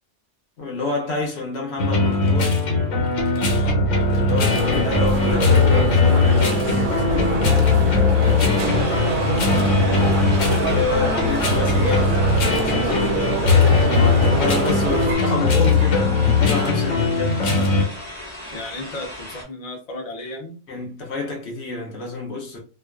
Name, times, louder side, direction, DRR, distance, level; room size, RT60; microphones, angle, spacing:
voice 1, 0.6-2.6 3.4-8.6 10.6-17.8 20.7-22.6, left 3 dB, 65° left, 0.9 m, -29 dB
sound 1, 1.8-17.9, left 3 dB, 80° left, 1.2 m, -19 dB
voice 2, 3.3-3.8 9.5-9.9 18.5-20.6, left 2 dB, 45° left, 0.6 m, -35 dB
sound 2, 4.5-15.2, right 3 dB, 55° right, 0.6 m, -25 dB
sound 3, 8.7-19.4, left 1 dB, 15° left, 1.0 m, -37 dB
2.5 x 2.2 x 2.3 m
omnidirectional pair, 1.3 m